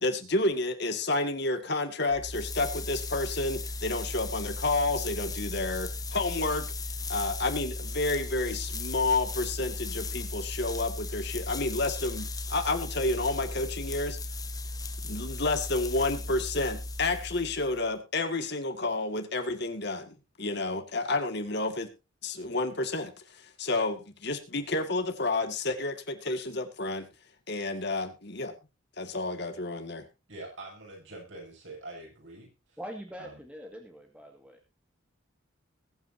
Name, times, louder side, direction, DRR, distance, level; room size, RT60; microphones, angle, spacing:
voice 1, 0.0-6.7 7.1-14.2 15.0-21.9 22.2-27.1 27.5-28.5 29.0-30.0, left 2 dB, 50° left, 7 dB, 2.0 m, -30 dB
sound 1, 2.1-17.9, left 2 dB, 15° left, 1.2 m, -36 dB
voice 2, 30.3-32.8 33.2-33.4, right 2 dB, 60° right, 0 dB, 7.9 m, -45 dB
voice 3, 32.8-34.6, equal, 5° right, 3 dB, 1.9 m, -43 dB
21.5 x 9.1 x 2.7 m, 0.29 s
head